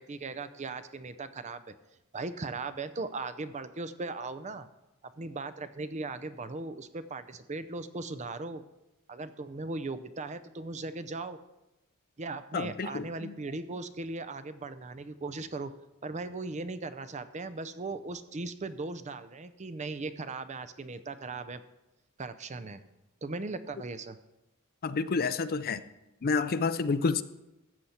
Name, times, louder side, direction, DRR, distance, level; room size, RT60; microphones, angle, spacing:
voice 1, 0.0-1.7 2.1-4.7 5.2-8.6 9.1-11.4 12.2-15.7 16.0-21.6 22.2-22.8 23.2-24.2, right 3 dB, 35° right, 12 dB, 0.6 m, -38 dB
voice 2, 12.5-13.3 24.8-25.8 26.2-27.2, left 4 dB, 45° left, 13 dB, 0.5 m, -29 dB
13.5 x 7.9 x 4.3 m, 0.95 s
head